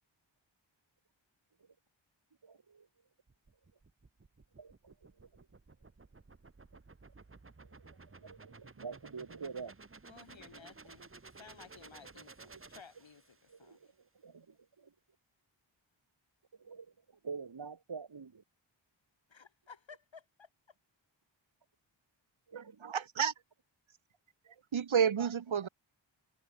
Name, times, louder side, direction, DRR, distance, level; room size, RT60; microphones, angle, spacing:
voice 1, 2.4-2.9 4.6-5.3 7.6-9.7 13.5-13.9 14.2-14.9 16.6-16.9 17.2-18.4 22.5-22.9, right 5 dB, 55° right, 2.5 m, -47 dB
sound 1, 3.3-13.6, right 3 dB, 25° right, 1.3 m, -55 dB
voice 2, 10.1-13.9 19.3-20.5, left 5 dB, 75° left, 3.3 m, -56 dB
voice 3, 22.5-23.3 24.7-25.7, right 7 dB, 80° right, 1.4 m, -30 dB
wide cardioid pair, 65°, 47 cm